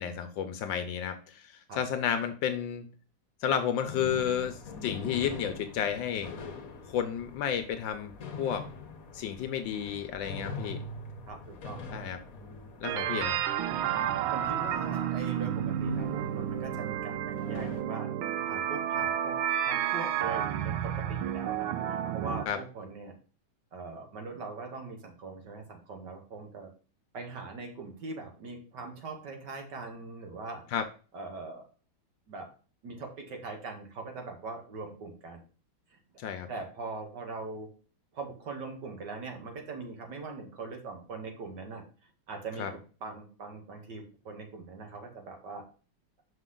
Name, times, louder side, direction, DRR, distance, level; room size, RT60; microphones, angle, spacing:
voice 1, 0.0-2.9 3.4-6.3 6.9-8.7 9.1-10.8 11.9-12.2 12.8-13.4 22.5-22.6 30.7-30.9 36.2-36.5 42.6-42.7, left 8 dB, 70° left, 8 dB, 1.2 m, -32 dB
sound 1, 3.8-17.8, left 3 dB, 55° left, 1.2 m, -44 dB
voice 2, 11.3-11.8 14.3-18.1 18.5-23.1 23.7-26.7 27.1-30.6 31.1-31.7 32.3-32.5 32.8-35.4 36.5-37.7 38.1-41.8 42.3-42.7 43.0-45.6, right 3 dB, 60° right, 3 dB, 1.8 m, -41 dB
sound 2, 12.8-22.5, right 10 dB, 80° right, 1.3 m, -31 dB
5.9 x 5.3 x 3.8 m, 0.37 s
omnidirectional pair, 2.3 m